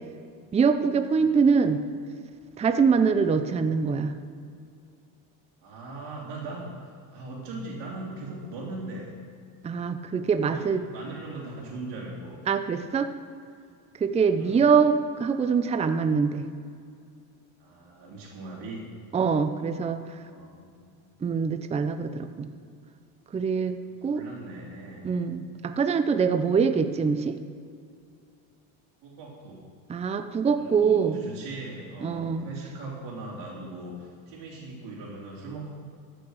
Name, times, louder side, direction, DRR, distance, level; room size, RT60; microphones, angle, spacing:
voice 1, 0.5-1.8 2.6-4.2 9.6-10.8 12.5-13.1 14.0-16.5 19.1-20.0 21.2-22.5 23.3-24.2 25.0-27.4 29.9-31.2 32.0-32.5, right 5 dB, 15° right, 9 dB, 0.5 m, -24 dB
voice 2, 5.6-9.1 10.4-12.4 14.3-14.7 17.6-18.8 20.1-20.9 24.0-25.1 29.0-29.6 30.6-35.7, right 2 dB, 70° right, -7 dB, 3.1 m, -40 dB
14.0 x 6.2 x 6.4 m, 2.3 s
cardioid pair, 115°, 43 cm